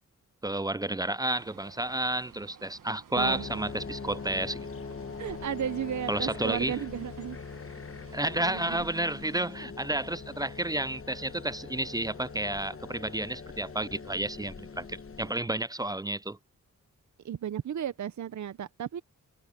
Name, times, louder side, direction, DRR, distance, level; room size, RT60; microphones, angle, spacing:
voice 1, 0.4-4.7 6.1-6.7 8.1-16.4, right 1 dB, 15° right, 0.3 m, -31 dB
sound 1, 1.3-9.5, right 7 dB, 80° right, 1.3 m, -54 dB
sound 2, 3.1-15.3, left 5 dB, 45° left, 1.2 m, -42 dB
voice 2, 3.1-3.5 5.2-7.4 8.4-8.8 17.2-19.0, right 9 dB, 65° right, 0.6 m, -34 dB
wide cardioid pair, 85°, 31 cm